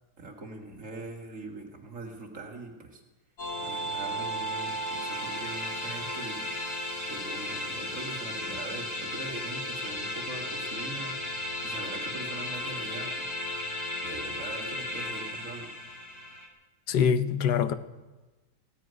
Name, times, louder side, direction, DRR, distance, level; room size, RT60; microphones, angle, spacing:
voice 1, 0.2-3.0 3.6-6.4 7.1-11.2 11.6-13.3 14.0-15.7, right 2 dB, 45° right, 2.2 m, -42 dB
sound 1, 3.4-16.5, left 1 dB, 65° left, 3.0 m, -35 dB
voice 2, 16.9-17.8, left 7 dB, 85° left, 1.5 m, -24 dB
16.5 x 9.1 x 9.7 m
omnidirectional pair, 1.9 m